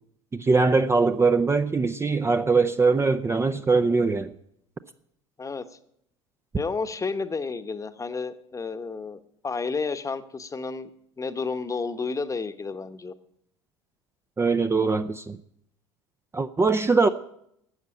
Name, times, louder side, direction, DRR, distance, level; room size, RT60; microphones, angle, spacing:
voice 1, 0.3-4.3 14.4-15.4 16.3-17.1, right 4 dB, 15° right, 9 dB, 0.6 m, -22 dB
voice 2, 6.5-10.9 11.2-13.1, left 4 dB, 20° left, 11 dB, 1.1 m, -31 dB
12.5 x 8.0 x 8.9 m, 0.73 s
hypercardioid pair, 70°, 16 cm